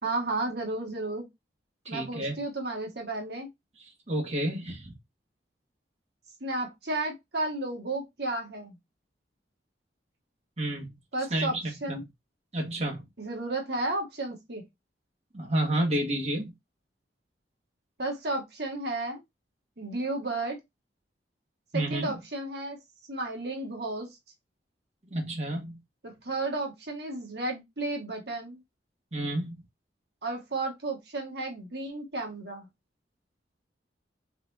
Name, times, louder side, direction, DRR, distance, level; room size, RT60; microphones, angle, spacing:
voice 1, 0.0-1.3 1.9-3.5 6.4-8.7 11.1-11.5 11.8-12.0 13.2-14.6 18.0-19.2 19.8-20.6 21.7-22.8 23.1-24.1 26.0-28.6 30.2-32.7, right 2 dB, 65° right, 1.4 m, -33 dB
voice 2, 1.8-2.3 4.1-4.9 10.6-10.9 11.3-12.0 12.5-13.0 15.3-16.5 21.7-22.1 25.1-25.8 29.1-29.5, right 1 dB, 40° right, 1.4 m, -30 dB
4.2 x 4.1 x 2.7 m
head